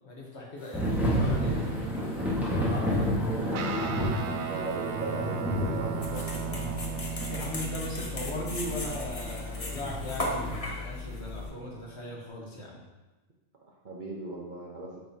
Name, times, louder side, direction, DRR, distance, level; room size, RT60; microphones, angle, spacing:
voice 1, 0.0-1.7 2.5-3.7 7.3-12.9, left 2 dB, 55° left, -2 dB, 1.5 m, -39 dB
Thunder / Rain, 0.7-10.5, equal, ahead, 1.4 m, -31 dB
Guitar, 3.5-12.3, right 8 dB, 65° right, 0.8 m, -38 dB
voice 2, 4.4-6.6 13.8-14.9, right 2 dB, 40° right, -3 dB, 0.9 m, -38 dB
sound 1, 6.0-11.5, left 2 dB, 30° left, 0.8 m, -36 dB
7.7 x 5.5 x 2.8 m, 1.1 s
omnidirectional pair, 1.4 m